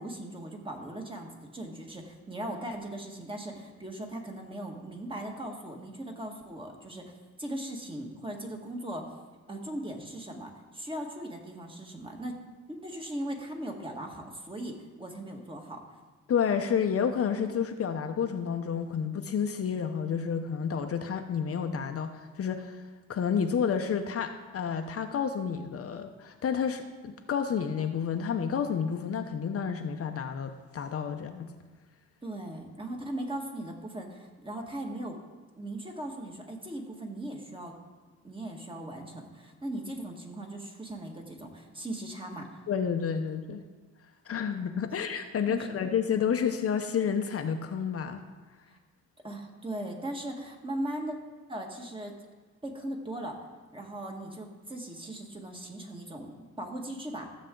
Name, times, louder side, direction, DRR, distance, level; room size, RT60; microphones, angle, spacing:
voice 1, 0.0-7.1 7.4-9.1 9.5-12.3 12.7-15.8 32.2-35.1 35.6-37.7 38.2-42.6 44.9-45.0 45.5-45.6 49.2-51.2 51.5-52.1 52.6-53.4 53.7-57.3, right 1 dB, 15° right, 1 dB, 1.9 m, -38 dB
voice 2, 16.3-22.8 23.1-31.5 42.7-43.6 44.3-48.2, left 7 dB, 50° left, 6 dB, 0.8 m, -30 dB
14.5 x 7.2 x 3.9 m, 1.3 s
cardioid pair, 90°, 30 cm